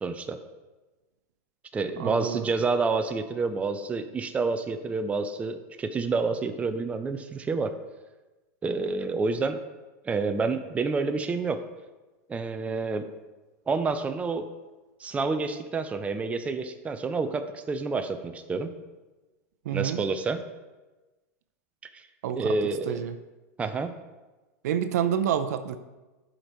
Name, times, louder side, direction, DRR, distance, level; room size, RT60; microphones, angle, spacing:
voice 1, 0.0-0.4 1.7-7.7 8.6-9.6 10.0-11.6 12.3-13.1 13.7-14.5 15.0-18.7 19.7-20.4 21.9-22.0 22.3-23.1 23.6-23.9, right 4 dB, 15° right, 8 dB, 0.5 m, -28 dB
voice 2, 2.0-2.5 19.6-20.0 22.2-22.5 22.9-23.1 24.6-25.8, right 9 dB, 75° right, 10 dB, 0.6 m, -28 dB
11.5 x 5.1 x 3.1 m, 1.2 s
supercardioid pair, 125°, 9 cm